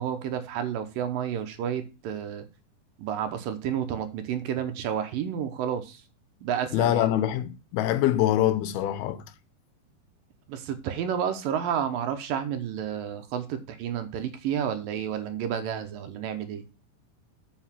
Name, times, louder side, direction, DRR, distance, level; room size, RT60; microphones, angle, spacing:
voice 1, 0.0-2.5 3.0-6.0 6.4-7.1 10.5-16.6, right 9 dB, 70° right, 2.5 m, -30 dB
voice 2, 6.7-9.2, left 12 dB, 80° left, 2.7 m, -24 dB
7.9 x 5.3 x 7.3 m
omnidirectional pair, 4.4 m